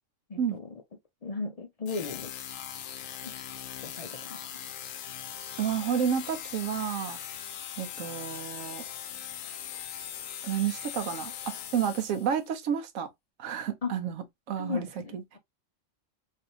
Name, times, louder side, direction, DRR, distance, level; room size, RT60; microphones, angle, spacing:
voice 1, 0.3-0.6 1.2-2.3 3.2-3.3 3.8-4.4 7.1-7.2 13.8-13.9 14.6-15.2, left 4 dB, 60° left, 0.4 m, -35 dB
sound 1, 1.9-12.4, left 9 dB, 85° left, 1.0 m, -40 dB
voice 2, 5.6-7.2 7.8-8.8 10.4-13.1 13.4-14.9 15.1-15.2, right 8 dB, 85° right, 1.0 m, -30 dB
3.3 x 2.7 x 2.6 m
omnidirectional pair, 1.3 m